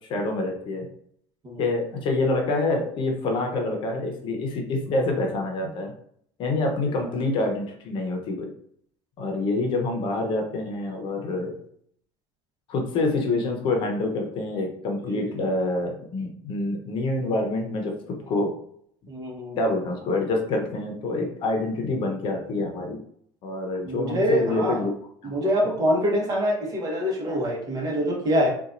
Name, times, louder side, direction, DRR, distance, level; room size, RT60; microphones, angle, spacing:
voice 1, 0.1-0.9 1.6-5.9 6.4-8.5 9.2-11.5 12.7-17.9 18.3-18.5 19.6-23.0 23.4-24.9 25.2-25.7, left 2 dB, 50° left, 2 dB, 0.8 m, -26 dB
voice 2, 19.1-19.6 23.8-24.8 25.2-28.5, equal, 35° right, -1 dB, 1.2 m, -25 dB
4.0 x 2.5 x 2.5 m, 0.65 s
supercardioid pair, 110°, 11 cm